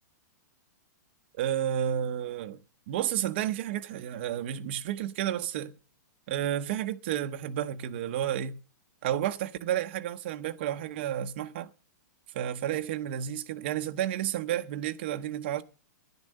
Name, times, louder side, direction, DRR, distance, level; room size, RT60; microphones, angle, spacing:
voice 1, 1.4-2.6 2.9-5.7 6.3-8.6 9.0-11.7 12.3-15.6, right 11 dB, 35° right, 0.8 m, -31 dB
12.0 x 9.7 x 6.4 m
hypercardioid pair, 175°, 10 cm